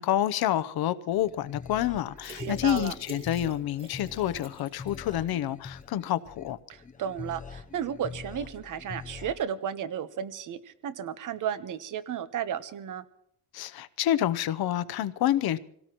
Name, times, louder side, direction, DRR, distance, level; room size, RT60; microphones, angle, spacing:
voice 1, 0.0-6.6 13.5-15.6, left 12 dB, 60° left, 0.8 m, -28 dB
sound 1, 1.1-9.3, left 5 dB, 20° left, 0.6 m, -44 dB
sound 2, 2.2-5.3 5.6-5.7 6.1-6.2, right 3 dB, 15° right, 1.8 m, -45 dB
voice 2, 2.4-2.9 6.7-13.0, right 9 dB, 50° right, 1.0 m, -33 dB
26.0 x 17.5 x 3.0 m
cardioid pair, 130°, 41 cm